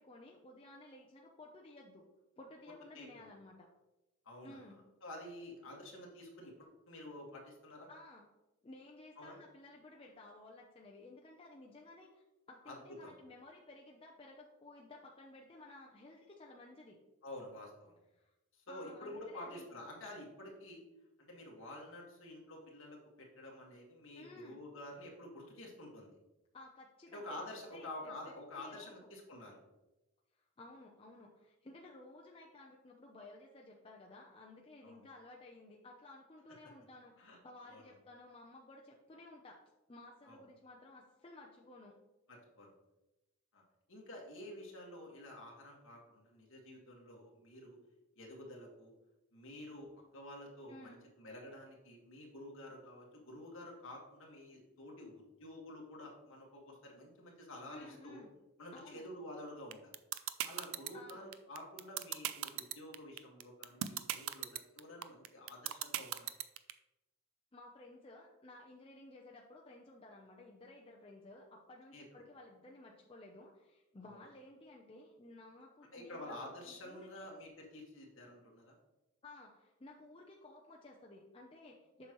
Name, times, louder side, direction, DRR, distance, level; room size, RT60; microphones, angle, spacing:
voice 1, 0.0-2.0 2.4-3.7 4.4-4.8 7.9-8.2 8.6-17.0 18.1-18.3 18.7-19.7 24.1-24.6 26.5-27.4 27.7-28.9 30.3-39.6 39.9-42.0 50.7-51.0 57.7-58.3 58.7-59.1 60.9-61.3 67.5-76.4 76.6-77.3 79.2-82.1, left 2 dB, 25° left, -1 dB, 0.6 m, -55 dB
voice 2, 2.9-3.3 4.3-4.6 5.0-7.9 9.2-9.4 12.7-12.8 13.0-13.1 17.2-18.0 18.5-20.8 21.2-26.1 27.1-29.6 34.8-35.0 37.2-37.9 40.3-40.4 42.3-42.7 43.5-43.6 43.9-47.8 48.2-48.9 49.3-49.9 50.1-58.2 58.6-59.9 60.4-66.4 71.9-72.2 74.0-74.2 75.9-78.8, left 1 dB, 60° left, -1 dB, 1.8 m, -50 dB
sound 1, 59.7-66.7, right 12 dB, 60° right, 0.4 m, -37 dB
7.4 x 5.9 x 3.0 m, 0.99 s
head